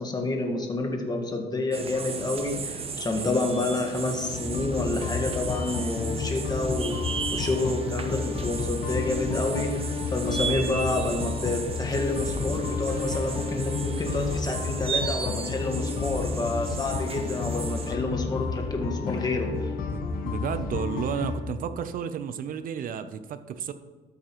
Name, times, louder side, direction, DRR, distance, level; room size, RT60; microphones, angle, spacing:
voice 1, 0.0-7.0 7.3-9.7 10.1-19.7, left 2 dB, 25° left, 2 dB, 1.6 m, -29 dB
sound 1, 1.7-18.0, right 5 dB, 35° right, 0.9 m, -35 dB
sound 2, 4.3-21.3, left 4 dB, 60° left, 1.3 m, -31 dB
voice 2, 19.9-23.7, right 8 dB, 55° right, 11 dB, 0.6 m, -32 dB
13.0 x 7.5 x 3.0 m, 1.3 s
cardioid pair, 110°, 17 cm